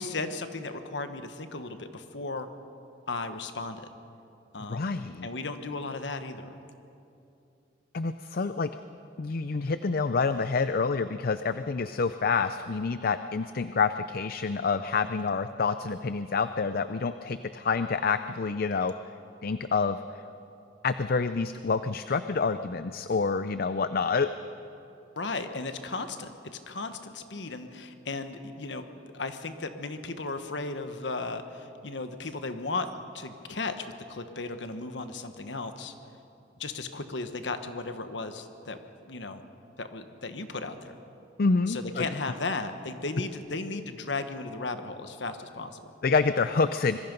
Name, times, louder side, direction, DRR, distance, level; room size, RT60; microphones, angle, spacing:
voice 1, 0.0-2.5 3.1-3.9 4.5-4.9 5.2-6.6 15.0-15.1 25.2-28.8 29.1-32.9 33.1-35.9 36.6-38.8 39.1-39.4 39.8-40.9 41.7-45.9, left 3 dB, 75° left, 8 dB, 1.3 m, -35 dB
voice 2, 4.6-5.3 7.9-8.7 9.2-18.9 19.4-20.0 20.8-24.3 41.4-42.1 46.0-47.0, left 4 dB, 55° left, 11 dB, 0.5 m, -27 dB
25.5 x 22.0 x 5.4 m, 2.8 s
head